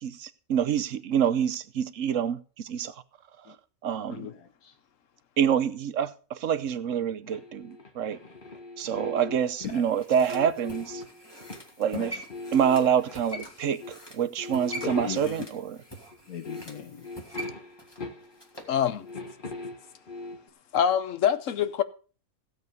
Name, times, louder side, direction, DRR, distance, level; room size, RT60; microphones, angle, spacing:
voice 1, 0.0-2.9 3.8-4.3 5.4-8.2 8.8-11.0 11.8-12.2 12.5-15.8, right 8 dB, 65° right, 1.1 m, -27 dB
voice 2, 4.1-4.7 9.6-9.8 11.9-12.2 14.7-15.4 16.3-17.1, left 7 dB, 90° left, 1.6 m, -38 dB
sound 1, 7.3-9.6 10.1-11.7 12.0-13.5 13.8-14.0 14.4-15.6 16.1-16.2 16.4-18.6 18.9-20.5, left 3 dB, 35° left, 1.6 m, -41 dB
sound 2, 9.4-18.8 19.1-19.2, equal, 15° left, 2.3 m, -44 dB
voice 3, 18.7-19.1 20.7-21.8, left 9 dB, 65° left, 1.2 m, -25 dB
16.0 x 7.9 x 5.3 m
omnidirectional pair, 1.5 m